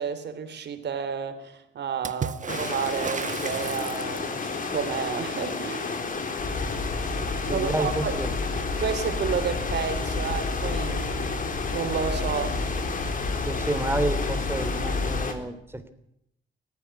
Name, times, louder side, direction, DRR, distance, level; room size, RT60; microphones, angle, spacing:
voice 1, 0.0-5.9 7.5-8.1 8.8-11.4 11.7-12.6, right 7 dB, 60° right, 11 dB, 3.4 m, -31 dB
Water / Splash splatter, 2.0-4.4 7.7-7.8 8.1-8.8 9.9-10.0, right 7 dB, 40° right, 1.1 m, -35 dB
sound 1, 2.5-15.3, left 4 dB, 45° left, 3.9 m, -32 dB
sound 2, 6.4-15.3, left 3 dB, 60° left, 5.2 m, -31 dB
voice 2, 7.5-8.4 13.4-15.9, right 2 dB, 10° right, 10 dB, 3.2 m, -30 dB
18.5 x 15.5 x 9.5 m, 0.78 s
cardioid pair, 90°, 20 cm